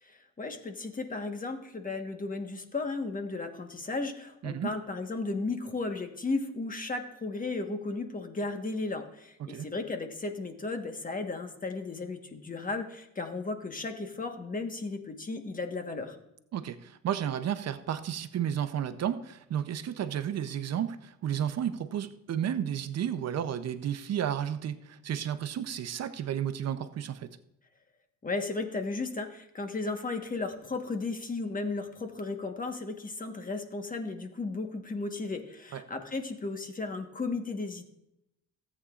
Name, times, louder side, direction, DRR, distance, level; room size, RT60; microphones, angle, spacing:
voice 1, 0.0-16.2 28.2-37.8, left 3 dB, 25° left, 5 dB, 1.4 m, -35 dB
voice 2, 16.5-27.3 35.7-35.8, right 9 dB, 60° right, 11 dB, 0.7 m, -32 dB
17.0 x 8.4 x 2.5 m, 0.82 s
cardioid pair, 90°, 30 cm